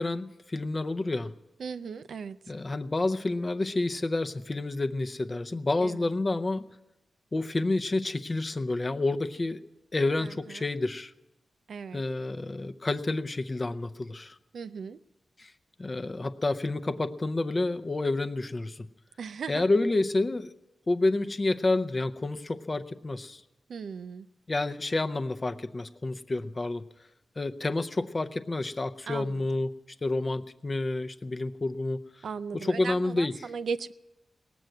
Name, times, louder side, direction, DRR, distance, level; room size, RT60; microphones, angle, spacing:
voice 1, 0.0-1.3 2.5-6.7 7.3-9.6 9.9-11.1 11.9-14.4 15.4-15.5 15.8-18.9 19.5-20.5 20.9-23.4 24.5-26.8 27.4-29.7 30.0-32.0 32.5-33.5, left 2 dB, 30° left, 10 dB, 0.6 m, -29 dB
voice 2, 1.6-2.4 5.8-6.0 10.2-10.3 11.7-12.0 14.5-15.0 19.2-19.7 23.7-24.3 29.1-29.3 32.2-33.9, right 5 dB, 80° right, 12 dB, 0.4 m, -36 dB
18.5 x 7.7 x 9.2 m, 0.98 s
wide cardioid pair, 135°, 0 cm